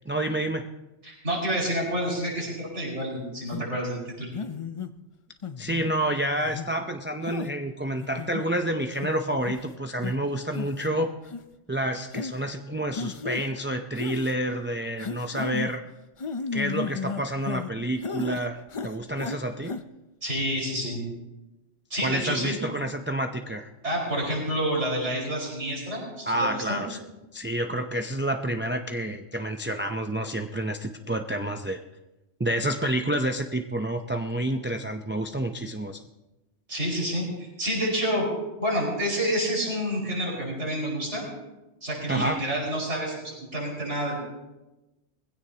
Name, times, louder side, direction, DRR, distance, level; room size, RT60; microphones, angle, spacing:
voice 1, 0.1-0.7 5.6-11.1 11.7-15.8 16.5-19.7 22.0-23.7 26.3-27.0 27.3-31.8 32.4-36.0 42.1-42.4, right 1 dB, 15° right, 4 dB, 0.5 m, -29 dB
voice 2, 1.0-4.3 20.2-21.0 21.9-22.6 23.8-26.8 36.7-38.3 38.6-41.3 41.8-44.3, equal, 85° right, -3 dB, 5.6 m, -28 dB
sound 1, 3.5-3.7 4.3-4.9 5.4-5.9 6.4-6.7 7.3-7.5 8.0-8.5 9.0-9.1 9.5-9.7 10.0-10.1 10.5-10.9 11.3-11.4 12.1-12.3 13.0-13.5 14.0-14.3 15.0-15.7 16.2-17.7 18.0-18.4 18.7-19.4 19.6-19.8, left 5 dB, 40° left, 0.5 m, -33 dB
20.5 x 16.0 x 2.9 m, 1.0 s
omnidirectional pair, 1.2 m